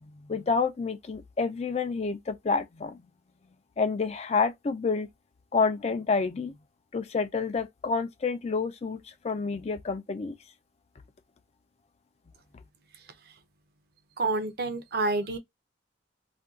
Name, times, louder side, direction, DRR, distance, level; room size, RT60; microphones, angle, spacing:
voice 1, 0.3-3.0 3.8-5.1 5.5-6.5 6.9-10.4, left 4 dB, 35° left, 0.4 m, -28 dB
voice 2, 14.2-15.4, right 2 dB, 55° right, 0.6 m, -28 dB
2.6 x 2.3 x 3.5 m
head